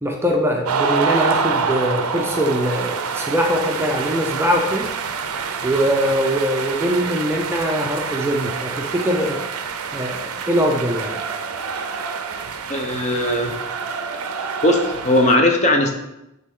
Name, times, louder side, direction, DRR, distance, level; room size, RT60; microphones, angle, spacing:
voice 1, 0.0-4.9 5.6-9.4 9.9-11.2, equal, 10° right, 1 dB, 0.6 m, -22 dB
sound 1, 0.6-15.4, right 5 dB, 90° right, 0.6 m, -27 dB
voice 2, 12.7-13.5 14.6-15.9, left 1 dB, 35° left, 3 dB, 0.9 m, -18 dB
9.5 x 4.1 x 3.7 m, 0.90 s
head